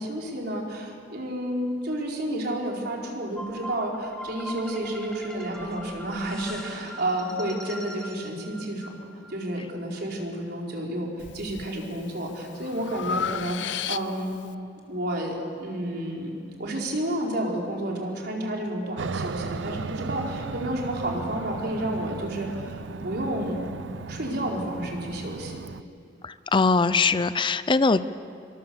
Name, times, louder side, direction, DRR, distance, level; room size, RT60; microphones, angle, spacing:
voice 1, 0.0-8.9 9.3-14.3 14.9-16.3 16.6-23.6 24.1-25.6, right 1 dB, 60° right, -1 dB, 4.3 m, -31 dB
sound 1, 3.4-9.5, equal, 5° left, 2.8 m, -41 dB
Breathing, 11.2-11.7 12.2-14.4, left 7 dB, 70° left, 0.7 m, -33 dB
Aircraft, 19.0-25.8, right 4 dB, 80° right, 0.6 m, -36 dB
voice 2, 26.2-28.2, left 4 dB, 25° left, 14 dB, 0.5 m, -22 dB
27.0 x 23.5 x 7.1 m, 2.4 s
head